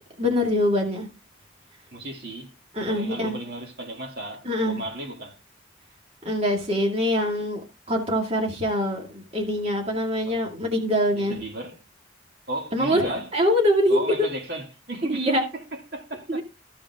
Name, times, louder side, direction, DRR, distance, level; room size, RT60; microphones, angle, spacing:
voice 1, 0.2-1.1 2.7-3.4 4.4-4.8 6.2-7.6 7.9-11.4 12.7-14.3 15.1-15.4 16.3-16.4, equal, 30° right, 2.2 m, -24 dB
voice 2, 1.9-2.5 2.9-5.4 10.2-10.5 11.1-11.8 12.5-13.3 13.9-16.4, right 1 dB, 50° right, 2.6 m, -35 dB
14.5 x 5.3 x 3.6 m
head